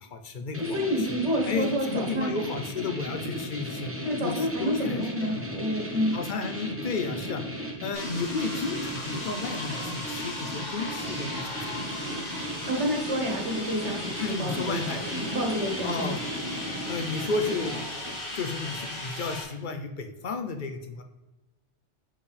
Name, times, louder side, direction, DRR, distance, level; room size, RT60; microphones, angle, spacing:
voice 1, 0.0-1.1 1.5-3.9 4.2-5.4 6.1-7.4 7.8-11.9 14.2-15.0 15.8-16.2 16.9-17.7 18.4-21.0, left 4 dB, 50° left, 6 dB, 0.8 m, -33 dB
sound 1, 0.5-18.3, equal, 10° right, 1.0 m, -36 dB
voice 2, 0.6-2.3 4.0-6.1 12.7-16.2, equal, 75° right, 1 dB, 1.7 m, -29 dB
sound 2, 7.9-19.4, left 1 dB, 80° left, 2.9 m, -37 dB
7.4 x 4.8 x 3.4 m, 1.1 s
omnidirectional pair, 1.2 m